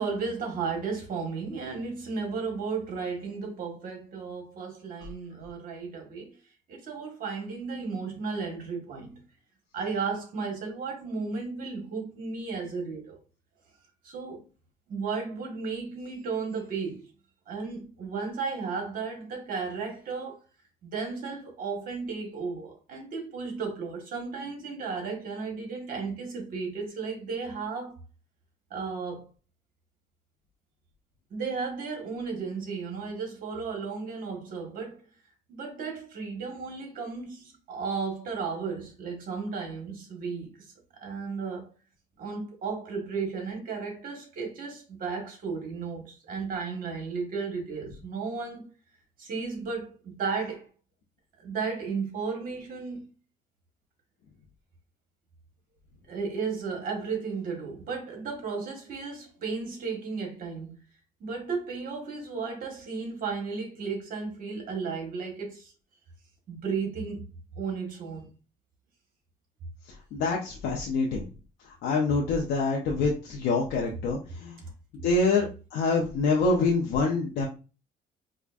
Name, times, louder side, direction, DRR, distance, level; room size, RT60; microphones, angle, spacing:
voice 1, 0.0-6.3 6.7-9.2 9.7-13.2 14.0-14.4 14.9-17.1 17.5-20.4 20.8-27.9 28.7-29.3 31.3-35.0 35.5-40.7 41.0-41.7 42.2-48.7 49.2-50.7 51.4-53.1 56.1-60.8 61.2-65.7 66.5-67.2 67.6-68.3, right 5 dB, 55° right, 1.4 m, -34 dB
voice 2, 70.1-71.2 71.7-74.6 75.0-77.5, left 3 dB, 80° left, 0.7 m, -26 dB
4.9 x 2.1 x 2.5 m
cardioid pair, 110°, 17 cm